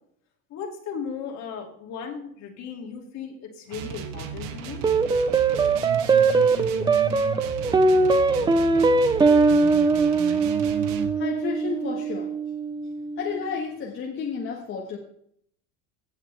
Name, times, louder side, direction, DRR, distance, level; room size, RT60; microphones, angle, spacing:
voice 1, 0.5-4.8, left 6 dB, 55° left, 2 dB, 2.5 m, -36 dB
sound 1, 3.7-11.1, right 7 dB, 70° right, 1.4 m, -35 dB
sound 2, 4.8-13.5, right 4 dB, 15° right, 0.6 m, -21 dB
voice 2, 11.1-12.3 13.2-15.0, left 6 dB, 35° left, 0 dB, 1.5 m, -31 dB
16.0 x 6.6 x 3.4 m, 0.67 s
supercardioid pair, 120°, 33 cm